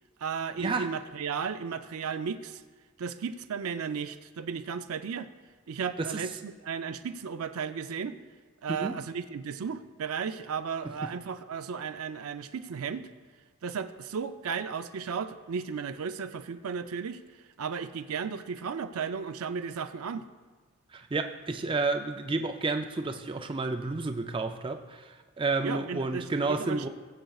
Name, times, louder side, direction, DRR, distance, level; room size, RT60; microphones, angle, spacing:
voice 1, 0.2-2.6 3.0-5.3 5.7-8.2 8.6-13.1 13.6-17.2 17.6-20.3 25.6-26.9, right 6 dB, 80° right, 9 dB, 0.5 m, -34 dB
voice 2, 20.9-26.9, right 3 dB, 25° right, 6 dB, 0.4 m, -31 dB
20.0 x 7.6 x 2.4 m, 1.4 s
head